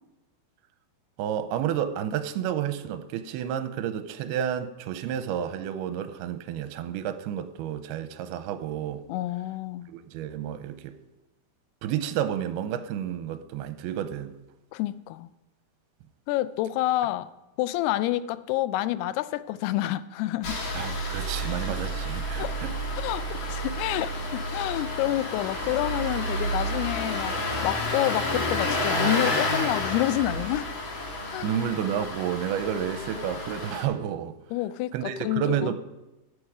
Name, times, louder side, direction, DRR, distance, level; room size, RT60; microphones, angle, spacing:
voice 1, 1.2-9.0 9.9-11.0 11.8-14.4 20.8-22.8 31.4-34.4 34.9-35.8, right 9 dB, 85° right, 2.6 m, -30 dB
voice 2, 9.1-9.9 14.7-15.3 16.3-17.3 17.6-20.6 22.4-22.6 23.0-30.7 31.3-31.5 34.5-35.7, left 15 dB, 90° left, 2.6 m, -28 dB
Engine starting, 20.4-33.8, left 1 dB, 40° left, 2.0 m, -30 dB
13.5 x 8.2 x 4.9 m
omnidirectional pair, 4.6 m